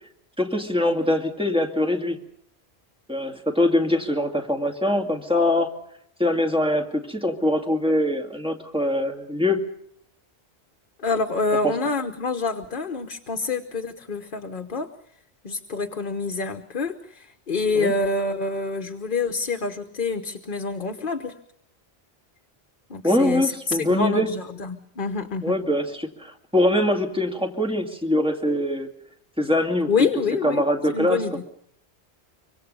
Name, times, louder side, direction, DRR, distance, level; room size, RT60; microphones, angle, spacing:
voice 1, 0.4-2.2 3.1-5.7 6.2-9.7 11.6-11.7 17.8-17.9 23.0-24.3 25.4-28.9 29.4-29.9 30.4-31.2, left 1 dB, 5° right, 3 dB, 2.3 m, -23 dB
voice 2, 11.0-14.9 15.4-21.4 22.9-25.6 29.9-31.4, left 4 dB, 50° left, 6 dB, 1.2 m, -27 dB
25.0 x 24.5 x 5.4 m, 0.72 s
omnidirectional pair, 1.1 m